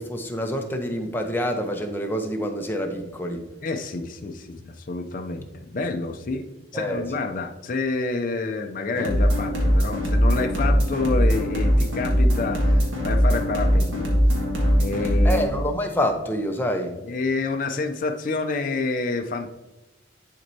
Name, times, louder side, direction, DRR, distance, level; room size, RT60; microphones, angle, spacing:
voice 1, 0.0-3.4 6.7-7.2 15.2-17.0, equal, 10° left, 3 dB, 0.7 m, -27 dB
voice 2, 3.6-6.4 6.7-14.1 14.8-15.5 17.0-19.5, left 3 dB, 45° left, 4 dB, 0.5 m, -28 dB
sound 1, 8.9-15.4, equal, 80° right, 1.7 m, -20 dB
10.5 x 4.4 x 2.7 m, 1.0 s
head